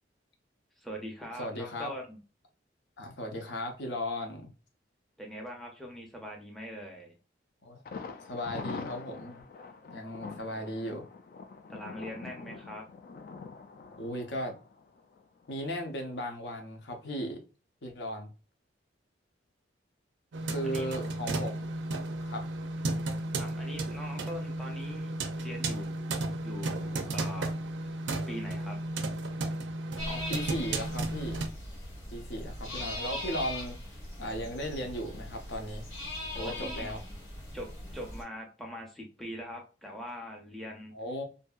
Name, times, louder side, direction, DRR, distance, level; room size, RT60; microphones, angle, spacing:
voice 1, 0.8-2.2 5.2-7.1 11.7-12.9 20.6-20.9 23.4-25.1 25.4-26.1 26.4-27.5 27.8-28.0 28.3-28.8 29.2-29.3 36.3-36.9 37.5-40.9, equal, ahead, 0.6 m, -42 dB
voice 2, 1.4-1.9 3.0-4.5 7.6-7.8 8.3-9.4 9.9-11.1 14.0-14.6 15.5-17.4 17.8-18.3 20.5-21.8 22.2-22.5 30.1-31.4 32.1-33.8 34.2-35.8 36.3-37.0 40.9-41.2, equal, 70° left, 0.7 m, -36 dB
Thunder, 7.9-15.6 15.9-16.0 16.4-16.5, left 4 dB, 50° left, 0.3 m, -44 dB
sound 1, 20.3-31.5, right 2 dB, 75° right, 0.4 m, -34 dB
sound 2, 30.0-38.2, left 1 dB, 90° left, 1.3 m, -40 dB
2.6 x 2.6 x 2.4 m
head